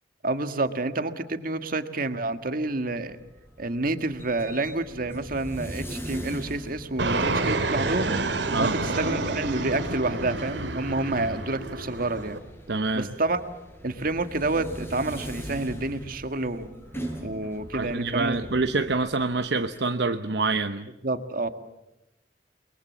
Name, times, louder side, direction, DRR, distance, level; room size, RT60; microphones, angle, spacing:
voice 1, 0.2-3.2 3.6-8.2 8.6-12.4 12.9-13.4 13.8-16.7 17.2-18.5 21.0-21.5, right 2 dB, 55° right, 9 dB, 1.8 m, -28 dB
sound 1, 3.0-19.8, right 1 dB, 15° left, 5.7 m, -41 dB
Fixed-wing aircraft airplane, 7.0-12.4, right 2 dB, 90° right, 2.4 m, -29 dB
voice 2, 12.7-13.1 17.7-20.9, right 3 dB, 70° right, 8 dB, 0.9 m, -26 dB
30.0 x 22.5 x 7.5 m, 0.93 s
head